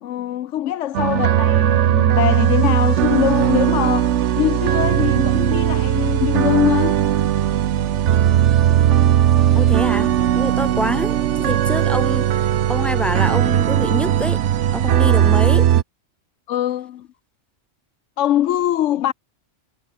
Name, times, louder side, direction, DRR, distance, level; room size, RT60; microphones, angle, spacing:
voice 1, 0.0-7.0 9.3-9.6 15.0-15.2 16.5-17.1 18.2-19.1, left 12 dB, 80° left, 1.0 m, -22 dB
sound 1, 0.9-15.8, right 11 dB, 75° right, 1.0 m, -18 dB
voice 2, 9.6-10.1 10.3-14.4 14.7-15.7, equal, ahead, 2.2 m, -26 dB
omnidirectional pair, 1.3 m